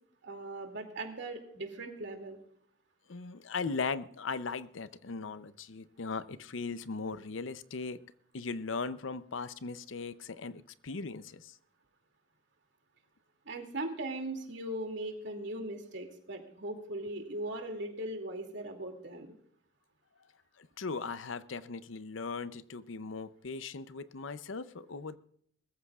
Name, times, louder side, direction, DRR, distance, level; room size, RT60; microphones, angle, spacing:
voice 1, 0.2-2.4 13.5-19.3, right 1 dB, 65° right, 4 dB, 2.5 m, -39 dB
voice 2, 3.1-8.0 8.3-11.6 20.6-25.2, left 4 dB, 75° left, 14 dB, 0.7 m, -38 dB
22.0 x 14.5 x 2.4 m, 0.65 s
head